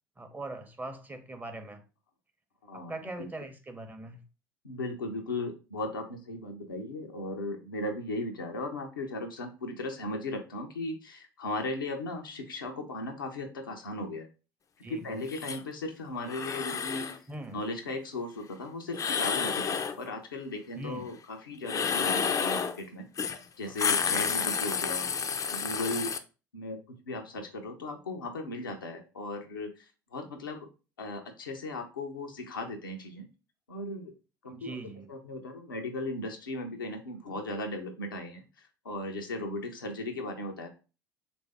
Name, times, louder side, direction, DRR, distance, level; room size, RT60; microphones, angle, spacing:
voice 1, 0.2-1.8 2.7-4.2 14.8-15.2 17.3-17.6 20.8-21.1 34.5-35.1, right 2 dB, 15° right, 0.6 m, -41 dB
voice 2, 2.6-3.3 4.6-14.3 14.9-17.1 17.5-23.1 23.6-25.1 25.5-26.1 26.5-26.8 27.0-30.7 31.0-33.3 33.7-34.1 34.4-40.7, left 2 dB, 90° left, 0.6 m, -37 dB
sound 1, 15.3-15.6 16.2-17.2 18.9-20.0 21.6-22.8 23.2-23.4 23.7-26.2, left 6 dB, 30° left, 0.4 m, -30 dB
3.3 x 2.6 x 3.3 m
hypercardioid pair, 65°, 11 cm